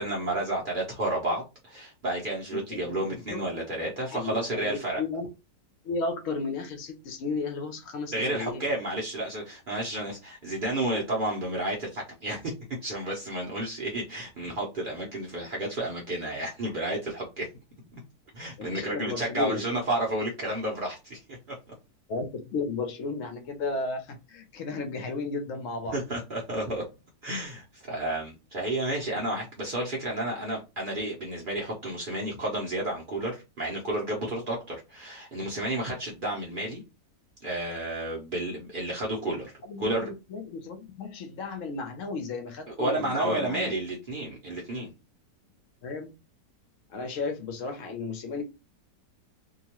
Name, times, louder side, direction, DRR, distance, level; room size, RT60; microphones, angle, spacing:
voice 1, 0.0-1.4 1.7-5.0 8.1-12.5 12.8-17.5 18.3-21.2 25.9-26.8 27.2-36.8 37.4-39.5 39.8-40.1 42.8-44.9, right 1 dB, 85° right, 0.4 m, -31 dB
voice 2, 2.5-3.4 4.1-5.3 5.8-8.6 18.6-19.6 22.1-26.0 39.7-43.7 45.8-46.1 46.9-48.4, left 4 dB, 75° left, 0.7 m, -34 dB
2.8 x 2.3 x 2.8 m
omnidirectional pair, 1.9 m